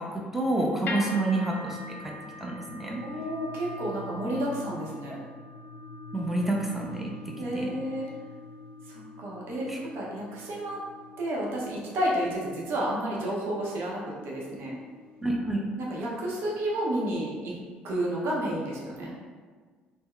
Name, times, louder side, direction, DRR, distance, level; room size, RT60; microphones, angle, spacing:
voice 1, 0.0-2.1 2.4-3.0 5.1-5.3 6.1-7.7 9.7-9.8 15.2-15.6, right 2 dB, 5° right, -2 dB, 0.6 m, -29 dB
sound 1, 0.9-17.1, left 2 dB, 40° left, 0.4 m, -43 dB
voice 2, 3.0-5.2 7.4-8.1 8.9-10.8 11.2-14.7 15.8-17.5 17.8-19.1, right 1 dB, 55° right, -4 dB, 0.8 m, -31 dB
3.1 x 2.0 x 3.6 m, 1.5 s
figure-of-eight pair, 50°, 5 cm